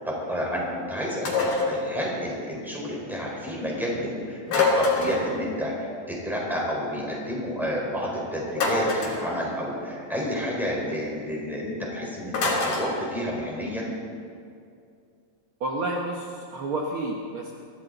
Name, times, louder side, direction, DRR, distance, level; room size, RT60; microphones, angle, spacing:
voice 1, 0.0-13.9, equal, ahead, -4 dB, 4.0 m, -30 dB
Baking dish dropped on floor, 1.3-1.8 4.5-5.3 8.5-9.2 12.3-12.9, left 3 dB, 70° left, 4.4 m, -24 dB
voice 2, 15.6-17.5, right 2 dB, 65° right, -1 dB, 1.3 m, -30 dB
22.5 x 15.5 x 4.0 m, 2.4 s
omnidirectional pair, 4.0 m